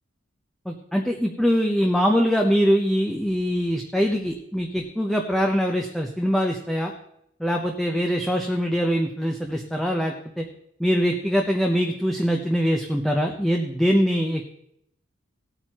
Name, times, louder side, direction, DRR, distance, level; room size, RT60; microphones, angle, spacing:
voice 1, 0.7-6.9 7.4-10.4 10.8-14.5, equal, ahead, 1 dB, 0.8 m, -23 dB
18.0 x 9.0 x 3.0 m, 0.74 s
head